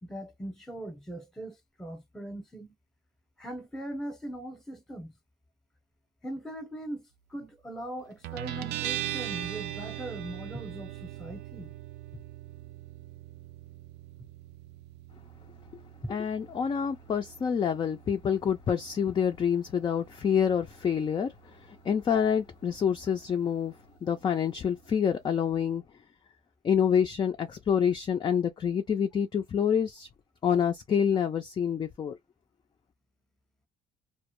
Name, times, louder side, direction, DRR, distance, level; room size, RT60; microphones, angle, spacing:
voice 1, 0.0-2.7 3.4-5.1 6.2-11.7 16.0-16.1, right 1 dB, 5° left, 0.7 m, -40 dB
Guitar, 8.2-25.4, right 14 dB, 80° right, 0.4 m, -42 dB
voice 2, 16.1-23.8 24.0-25.8 26.6-30.1 30.4-32.2, left 7 dB, 30° left, 0.3 m, -27 dB
2.1 x 2.0 x 3.0 m
cardioid pair, 110°, 17 cm